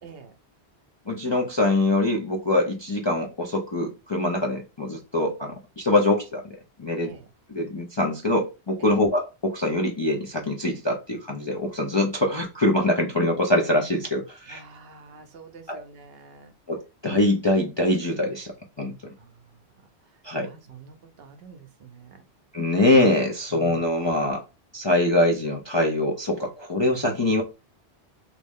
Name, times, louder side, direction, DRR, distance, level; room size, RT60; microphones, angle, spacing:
voice 1, 0.0-0.4 7.0-7.3 8.8-9.0 14.5-16.5 19.2-19.6 20.1-22.3 23.5-23.9, right 6 dB, 70° right, 0.8 m, -47 dB
voice 2, 1.1-7.1 7.5-14.6 15.7-15.8 16.7-18.5 18.8-19.1 20.2-20.5 22.5-24.4 24.7-27.4, left 1 dB, 40° left, 0.4 m, -24 dB
3.0 x 2.6 x 3.5 m
omnidirectional pair, 1.1 m